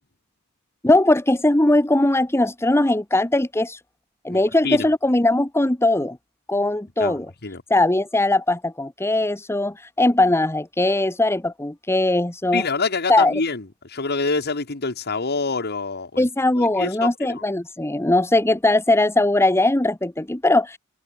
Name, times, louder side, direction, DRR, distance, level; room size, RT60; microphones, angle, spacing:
voice 1, 0.8-3.8 4.2-6.2 6.5-7.3 7.7-12.7 13.1-13.3 16.2-20.8, left 2 dB, 10° left, 1.0 m, -20 dB
voice 2, 4.3-4.9 7.0-7.6 12.5-16.3 16.6-17.4, left 4 dB, 50° left, 1.7 m, -26 dB
head